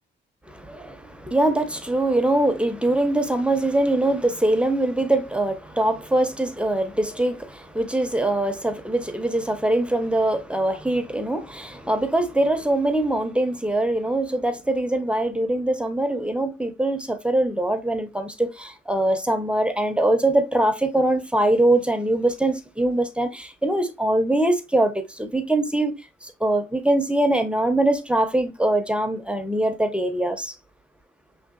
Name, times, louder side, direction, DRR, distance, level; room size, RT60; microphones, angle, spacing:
voice 1, 0.5-25.9 26.2-30.5, right 1 dB, 5° right, 0.7 m, -23 dB
5.3 x 3.7 x 2.4 m
cardioid pair, 90°, 20 cm